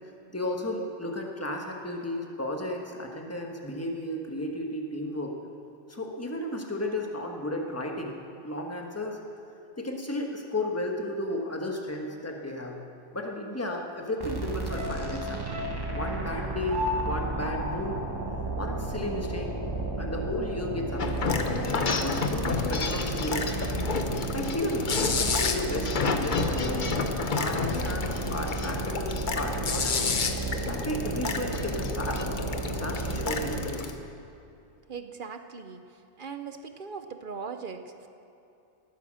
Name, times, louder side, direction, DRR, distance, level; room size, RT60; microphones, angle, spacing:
voice 1, 0.3-5.3 5.9-8.2 8.4-9.2 9.8-12.8 13.1-15.4 15.9-18.0 18.6-19.5 19.9-21.4 21.7-23.6 24.3-26.9 27.4-30.0 30.7-32.2 32.7-34.0, left 1 dB, 15° left, 1 dB, 1.3 m, -33 dB
sound 1, 14.2-33.8, right 2 dB, 20° right, 1.2 m, -33 dB
sound 2, 14.7-19.1 19.4-19.5, left 2 dB, 80° right, 2.6 m, -36 dB
sound 3, 21.0-33.9, left 4 dB, 45° left, 1.0 m, -30 dB
voice 2, 34.9-38.1, right 5 dB, 55° right, 8 dB, 0.8 m, -40 dB
19.0 x 9.3 x 6.3 m, 2.6 s
omnidirectional pair, 1.2 m